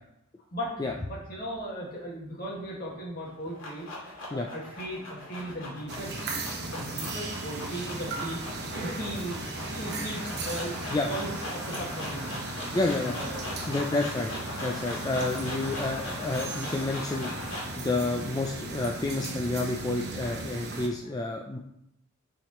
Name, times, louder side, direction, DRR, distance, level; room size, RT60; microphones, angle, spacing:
voice 1, 0.5-3.9 4.3-6.2 6.7-9.4 9.7-10.7 11.1-12.3 13.0-13.6 21.0-21.1, equal, 50° left, -3 dB, 1.9 m, -37 dB
sound 1, 3.2-17.8, left 1 dB, 70° left, 2.2 m, -40 dB
sound 2, 5.9-20.9, right 2 dB, 55° right, 1.1 m, -37 dB
voice 2, 12.7-13.2 13.7-14.3 14.6-17.3 17.8-21.6, left 2 dB, 20° left, 1 dB, 0.4 m, -29 dB
7.1 x 4.9 x 3.1 m, 0.77 s
head